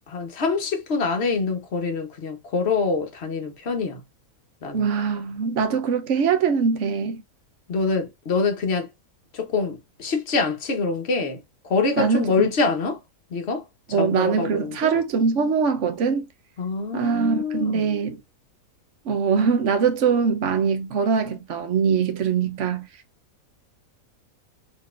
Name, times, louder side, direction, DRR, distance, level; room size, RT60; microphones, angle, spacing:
voice 1, 0.1-4.0 4.6-4.9 7.7-8.9 9.3-13.0 13.3-13.6 14.0-14.9 16.6-17.8, left 4 dB, 50° left, 1.2 m, -25 dB
voice 2, 4.7-7.2 12.0-12.5 13.9-16.2 16.9-18.2 19.0-22.9, right 6 dB, 60° right, 1.2 m, -22 dB
4.1 x 4.0 x 2.5 m
omnidirectional pair, 1.5 m